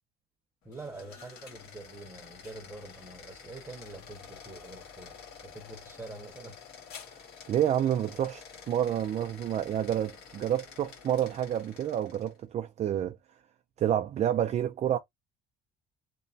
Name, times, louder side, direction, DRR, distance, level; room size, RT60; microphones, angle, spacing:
sound 1, 0.6-12.4, left 6 dB, 70° left, 1.5 m, -50 dB
voice 1, 0.6-5.1 5.4-6.6, right 2 dB, 15° right, 0.8 m, -45 dB
voice 2, 7.5-13.2 13.8-15.0, right 10 dB, 40° right, 0.4 m, -29 dB
3.0 x 2.1 x 2.6 m
cardioid pair, 110°, 17 cm